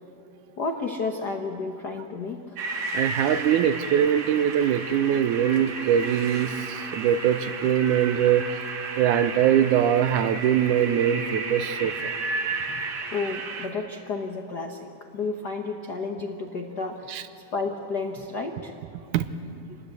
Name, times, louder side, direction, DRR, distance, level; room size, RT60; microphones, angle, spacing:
voice 1, 0.6-2.6 12.7-12.8 13.1-14.9 15.1-17.1 17.5-18.7 19.7-19.8, left 4 dB, 65° left, 3 dB, 1.0 m, -31 dB
sound 1, 2.6-13.7, right 3 dB, 60° right, 2.8 m, -33 dB
voice 2, 2.9-8.6 9.0-12.2 17.1-17.2 19.1-19.6, right 9 dB, 80° right, 11 dB, 2.2 m, -23 dB
27.0 x 19.5 x 8.2 m, 2.8 s
omnidirectional pair, 3.7 m